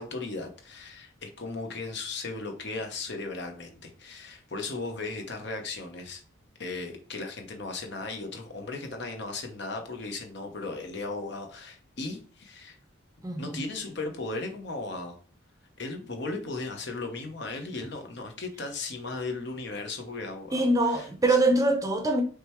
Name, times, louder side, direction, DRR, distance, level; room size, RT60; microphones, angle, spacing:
voice 1, 0.0-6.2 6.6-12.8 13.4-15.2 15.8-21.1, left 3 dB, 55° left, 0.9 m, -36 dB
voice 2, 13.2-13.6 20.5-22.2, right 2 dB, 15° right, 0.6 m, -24 dB
5.1 x 3.3 x 3.0 m
head